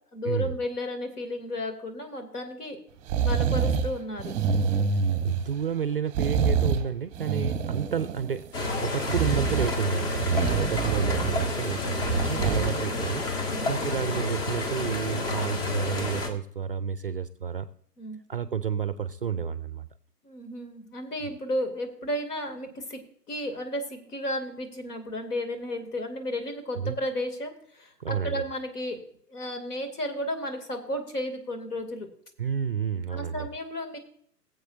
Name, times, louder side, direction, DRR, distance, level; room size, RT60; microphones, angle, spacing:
voice 1, 0.1-2.8 3.2-4.3 12.1-12.7 13.5-13.7 18.0-18.2 20.2-23.0 23.3-29.0 29.3-32.1 33.1-34.0, left 1 dB, 65° left, 6 dB, 2.6 m, -33 dB
sound 1, 3.1-3.9 4.2-5.6 6.1-6.8 7.1-8.5 9.0-9.7 10.1-11.5 12.0-12.7 13.1-13.2, right 6 dB, 15° right, 0.9 m, -26 dB
voice 2, 5.2-8.5 8.8-17.7 18.3-19.9 26.8-27.0 28.0-28.4 32.4-33.5, right 7 dB, 40° right, 13 dB, 0.4 m, -30 dB
sound 2, 8.5-16.3, left 2 dB, 35° left, 1.7 m, -30 dB
20.0 x 7.9 x 2.6 m, 0.62 s
figure-of-eight pair, 125°, 49 cm